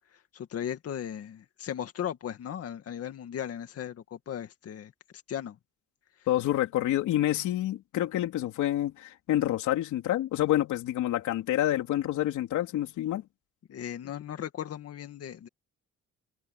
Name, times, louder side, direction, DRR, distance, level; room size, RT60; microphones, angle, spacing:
voice 1, 0.3-4.9 5.3-5.6 13.7-15.5, left 9 dB, 55° left, 2.1 m, -37 dB
voice 2, 6.3-13.2, left 13 dB, 85° left, 3.6 m, -28 dB
cardioid pair, 145°, 29 cm